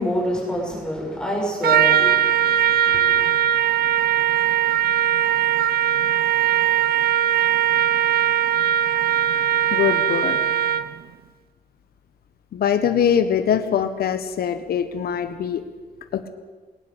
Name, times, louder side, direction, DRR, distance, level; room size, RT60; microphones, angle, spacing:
voice 1, 0.0-3.3, equal, 5° left, -3 dB, 7.3 m, -27 dB
Trumpet, 1.6-11.0, right 10 dB, 85° right, 0.8 m, -20 dB
voice 2, 9.7-10.4 12.5-15.6 16.1-16.3, left 8 dB, 80° left, 9 dB, 1.5 m, -22 dB
21.0 x 18.5 x 8.3 m, 1.4 s
wide cardioid pair, 135°, 16 cm